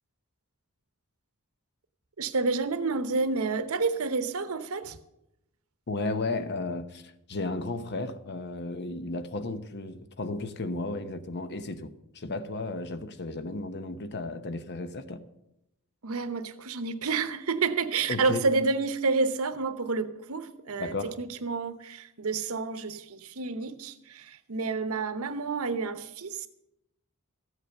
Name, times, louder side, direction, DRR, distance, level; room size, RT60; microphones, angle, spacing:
voice 1, 2.2-5.0 16.0-26.5, right 4 dB, 70° right, 0.9 m, -29 dB
voice 2, 5.9-11.9 12.1-15.2 18.1-18.5 20.8-21.2, left 2 dB, 50° left, 0.9 m, -34 dB
14.0 x 8.2 x 6.7 m
head